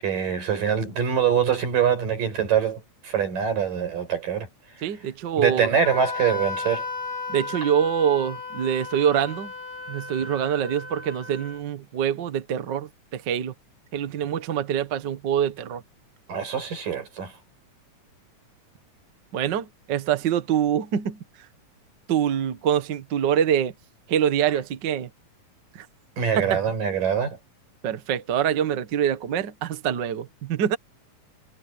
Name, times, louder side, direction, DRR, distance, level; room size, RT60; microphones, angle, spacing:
voice 1, 0.0-4.5 5.4-6.9 16.3-17.3 26.2-27.4, right 7 dB, 75° right, 7.2 m, -24 dB
voice 2, 4.8-5.7 7.3-9.5 9.9-13.5 13.9-15.8 19.3-21.2 22.1-23.7 24.1-25.1 25.8-25.9 26.4-26.5 27.8-30.8, right 9 dB, 60° right, 1.1 m, -25 dB
Wind instrument woodwind instrument, 5.8-11.6, left 4 dB, 90° left, 6.4 m, -35 dB
omnidirectional pair, 3.9 m